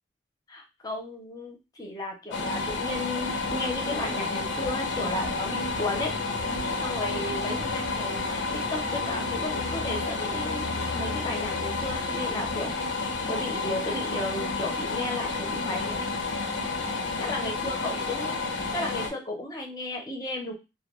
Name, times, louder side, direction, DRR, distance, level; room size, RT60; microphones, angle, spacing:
voice 1, 0.5-6.2 6.8-8.5 8.7-12.7 13.3-16.1 17.2-20.5, left 2 dB, 20° left, 1 dB, 0.6 m, -34 dB
sound 1, 2.3-19.1, left 3 dB, 80° left, 0.6 m, -30 dB
2.2 x 2.2 x 3.0 m, 0.26 s
head